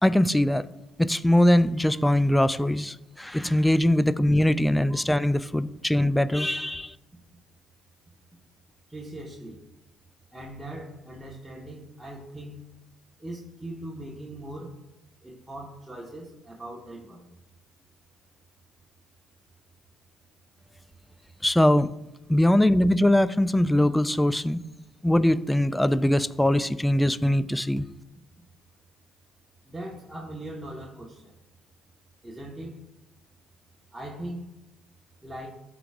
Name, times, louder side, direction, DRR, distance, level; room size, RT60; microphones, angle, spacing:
voice 1, 0.0-0.6 1.0-6.9 21.4-21.9 22.3-24.6 25.0-27.9, left 1 dB, 10° left, 17 dB, 0.4 m, -22 dB
voice 2, 8.9-9.6 10.3-12.6 13.2-14.8 15.2-17.4 29.7-31.3 32.2-32.8 33.9-34.5 35.2-35.5, right 1 dB, 10° right, -3 dB, 1.4 m, -40 dB
13.5 x 4.7 x 2.5 m, 0.95 s
hypercardioid pair, 60°, 0 cm